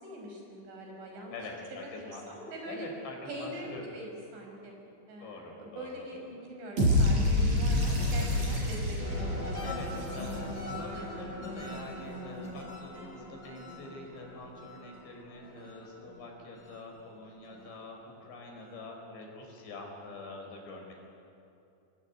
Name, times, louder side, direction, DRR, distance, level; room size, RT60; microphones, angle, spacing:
voice 1, 0.0-1.4 1.7-2.9 3.3-4.7 5.1-9.5 17.2-17.7, right 1 dB, 90° right, 1 dB, 8.1 m, -43 dB
voice 2, 1.3-2.2 2.7-3.9 5.2-5.9 9.1-9.2 9.6-20.9, left 3 dB, 70° left, 1 dB, 7.0 m, -45 dB
sound 1, 6.8-10.9, left 1 dB, 40° right, 8.3 m, -27 dB
sound 2, 9.0-17.8 18.2-18.7, left 1 dB, 25° left, 8.7 m, -42 dB
27.5 x 21.5 x 9.5 m, 2.8 s
omnidirectional pair, 5.1 m